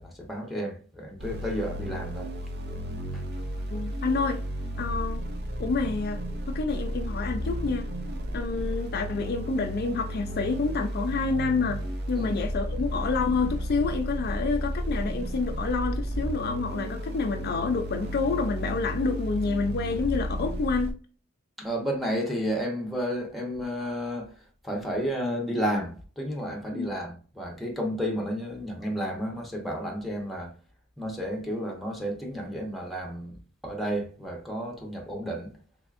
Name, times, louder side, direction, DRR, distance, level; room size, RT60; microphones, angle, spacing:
voice 1, 0.0-2.3 3.1-3.2 12.1-12.4 21.6-24.3 24.6-30.5 31.0-35.6, equal, ahead, 0.8 m, -32 dB
sound 1, 1.2-20.9, equal, 55° right, 0.6 m, -33 dB
voice 2, 3.7-4.4 4.8-5.2 5.6-6.2 6.5-7.9 8.3-21.0 26.8-26.9, left 4 dB, 50° left, 0.4 m, -28 dB
3.5 x 3.3 x 2.4 m
head